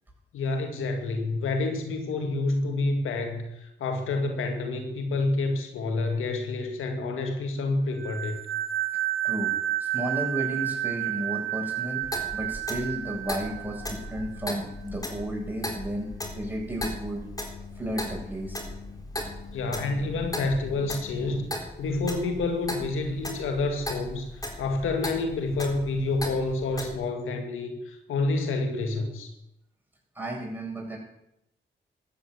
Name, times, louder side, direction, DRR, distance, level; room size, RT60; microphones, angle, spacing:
voice 1, 0.3-8.4 19.5-29.3, left 3 dB, 90° left, 4 dB, 2.1 m, -28 dB
sound 1, 8.0-14.4, right 13 dB, 65° right, 1.8 m, -31 dB
voice 2, 9.8-12.1 12.3-17.2 17.7-18.6 30.1-31.0, right 1 dB, 10° right, -2 dB, 8.0 m, -33 dB
Clock, 12.0-26.9, left 1 dB, 20° left, 4.2 m, -37 dB
sound 2, 13.3-21.6, left 8 dB, 40° left, 2.8 m, -46 dB
14.0 x 9.2 x 8.1 m, 0.82 s
supercardioid pair, 45°, 20 cm